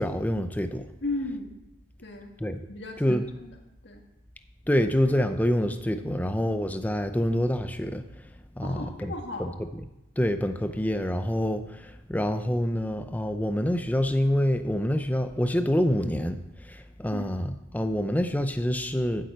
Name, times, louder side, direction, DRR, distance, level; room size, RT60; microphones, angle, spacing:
voice 1, 0.0-0.9 2.4-2.6 3.0-3.2 4.7-8.0 8.6-9.1 9.4-9.5 10.2-16.4 16.7-19.3, equal, 10° left, 8 dB, 0.6 m, -26 dB
voice 2, 1.0-1.6 2.0-2.3 2.7-3.5 3.8-4.0 6.0-6.3 8.6-9.5 17.1-17.3, left 2 dB, 60° left, 2 dB, 1.9 m, -36 dB
8.7 x 7.7 x 8.1 m, 0.94 s
head